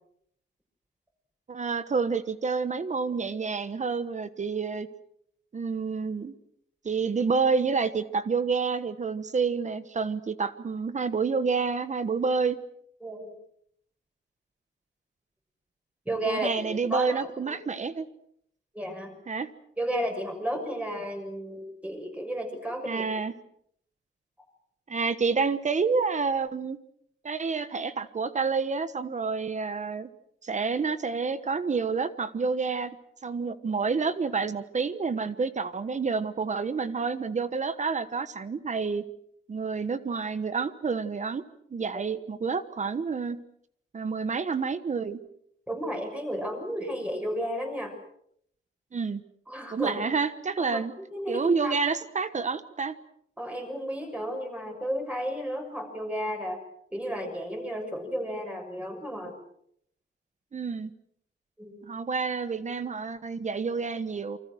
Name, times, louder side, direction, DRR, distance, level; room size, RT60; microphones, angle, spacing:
voice 1, 1.5-4.9 5.5-6.3 6.8-12.6 16.3-18.1 19.3-19.5 22.9-23.3 24.9-26.8 27.2-30.1 30.4-33.0 33.2-39.0 39.5-41.4 41.7-43.4 43.9-45.2 48.9-49.2 49.7-50.9 51.3-52.9 60.5-60.9 61.8-64.4, right 5 dB, 35° right, 13 dB, 1.2 m, -29 dB
voice 2, 13.0-13.3 16.0-17.6 18.7-19.1 19.8-23.1 41.9-42.1 45.7-47.9 49.5-50.0 50.6-50.8 51.1-51.8 53.4-56.6 56.9-59.4 61.6-61.8, equal, 5° right, 3 dB, 6.5 m, -33 dB
28.5 x 25.0 x 6.3 m, 0.70 s
wide cardioid pair, 165°, 21 cm